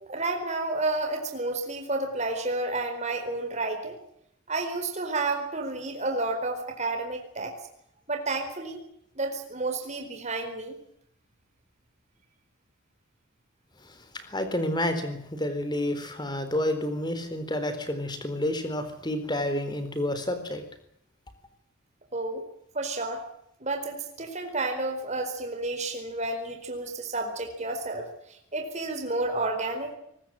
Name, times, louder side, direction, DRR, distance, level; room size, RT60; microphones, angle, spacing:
voice 1, 0.0-4.0 4.5-7.5 8.1-8.8 9.2-10.8 22.1-22.4 22.7-23.2 23.6-29.9, right 2 dB, 35° right, 4 dB, 4.4 m, -31 dB
voice 2, 14.1-20.6, left 1 dB, 20° left, 10 dB, 4.0 m, -29 dB
23.5 x 19.5 x 7.6 m, 0.73 s
head